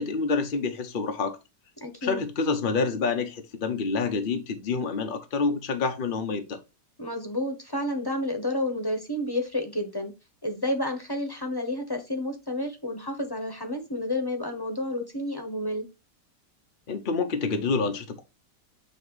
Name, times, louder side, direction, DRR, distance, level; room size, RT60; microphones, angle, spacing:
voice 1, 0.0-1.4 2.0-6.6 16.9-18.2, left 4 dB, 45° left, 0.7 m, -27 dB
voice 2, 1.8-2.2 7.0-10.1 10.4-15.9, left 1 dB, 15° left, 0.9 m, -30 dB
7.8 x 2.9 x 4.7 m
omnidirectional pair, 1.8 m